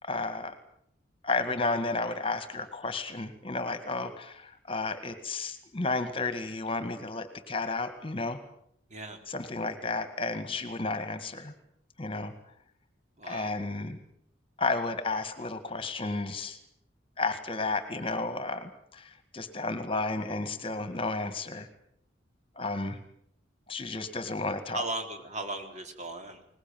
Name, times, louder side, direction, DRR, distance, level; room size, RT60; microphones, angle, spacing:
voice 1, 0.0-0.6 1.2-8.4 9.3-11.5 12.0-12.3 13.2-14.0 14.6-16.6 17.2-21.7 22.6-23.0 23.7-24.8, left 3 dB, 30° left, 10 dB, 2.0 m, -32 dB
voice 2, 8.9-9.2 13.2-13.6 24.4-26.4, right 2 dB, 35° right, 5 dB, 3.9 m, -37 dB
22.5 x 20.0 x 9.2 m, 0.70 s
head